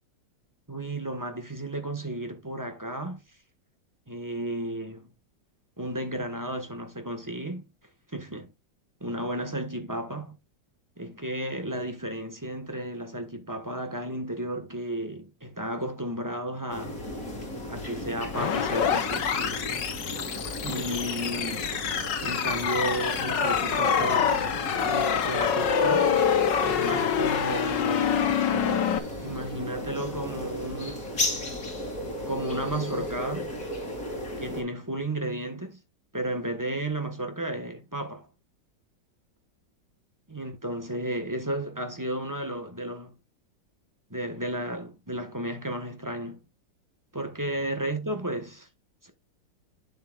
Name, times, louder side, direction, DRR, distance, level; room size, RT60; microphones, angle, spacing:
voice 1, 0.7-3.2 4.1-5.1 5.8-7.7 8.1-8.5 9.0-10.4 11.0-17.0 17.6-19.3 20.6-21.8 22.2-24.5 24.8-26.1 26.6-28.3 29.2-31.2 32.3-33.5 34.4-35.8 36.1-38.3 40.3-43.1 44.1-46.4 47.1-48.7 49.0-49.1, right 1 dB, 10° right, 1.2 m, -33 dB
sound 1, 16.7-34.6, left 1 dB, 50° left, 3.7 m, -35 dB
sound 2, 18.3-29.0, left 7 dB, 75° left, 1.8 m, -26 dB
8.6 x 7.6 x 2.4 m
omnidirectional pair, 2.0 m